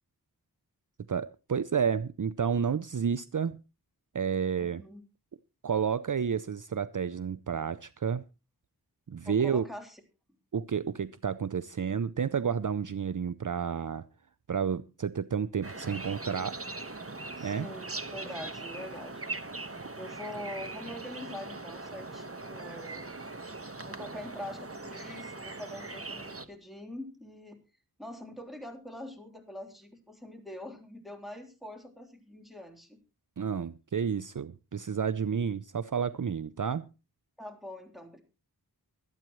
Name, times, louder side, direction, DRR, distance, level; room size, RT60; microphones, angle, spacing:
voice 1, 1.1-3.6 4.1-4.8 5.6-8.2 9.1-9.6 10.5-14.0 14.5-16.6 17.4-17.7 33.4-36.8, right 7 dB, 55° right, 15 dB, 0.6 m, -30 dB
voice 2, 4.6-5.0 9.3-10.0 17.4-19.3 20.0-23.1 23.8-27.6 28.0-33.0 37.4-38.2, left 1 dB, ahead, 3 dB, 3.4 m, -44 dB
sound 1, 15.6-26.5, right 3 dB, 35° right, 1.3 m, -41 dB
24.0 x 9.0 x 3.1 m, 0.30 s
wide cardioid pair, 40°, 38 cm